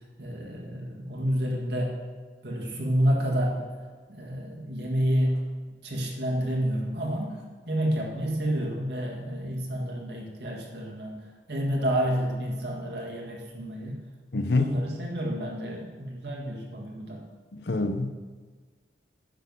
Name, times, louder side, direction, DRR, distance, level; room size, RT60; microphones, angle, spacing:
voice 1, 0.2-1.9 2.4-3.7 4.1-5.4 5.8-14.0 14.6-17.2, equal, 65° right, -2 dB, 1.8 m, -29 dB
voice 2, 14.3-14.7 17.5-18.2, left 2 dB, 70° left, 8 dB, 0.8 m, -26 dB
10.5 x 6.6 x 5.4 m, 1.5 s
head